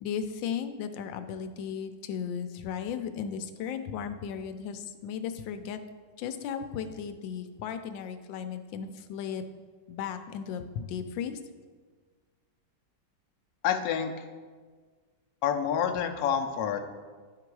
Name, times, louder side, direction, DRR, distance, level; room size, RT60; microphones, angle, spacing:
voice 1, 0.0-5.8 6.2-9.4 9.9-11.4, left 7 dB, 90° left, 8 dB, 1.3 m, -35 dB
voice 2, 13.6-14.1 15.4-16.8, left 8 dB, 65° left, 4 dB, 1.0 m, -28 dB
10.5 x 3.8 x 4.6 m, 1.5 s
omnidirectional pair, 2.0 m